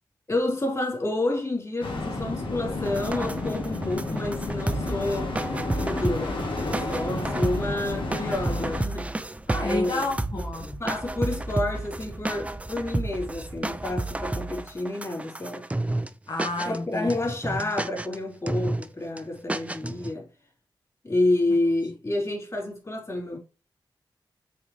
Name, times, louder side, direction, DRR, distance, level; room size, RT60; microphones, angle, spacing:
voice 1, 0.3-5.3 5.8-9.1 9.6-10.1 10.8-15.7 16.6-20.3 21.0-23.4, left 2 dB, 35° left, 3.7 m, -29 dB
sound 1, 1.8-8.8, left 2 dB, 85° left, 1.4 m, -31 dB
sound 2, 2.8-16.1 16.4-16.8 17.1-18.2 18.5-18.8 19.2-19.3 19.5-20.1, right 2 dB, 15° right, 0.5 m, -31 dB
voice 2, 7.1-7.8 9.5-10.8 16.3-17.1 17.6-17.7, left 2 dB, 55° left, 1.2 m, -31 dB
7.1 x 4.2 x 3.2 m
wide cardioid pair, 80°, 9 cm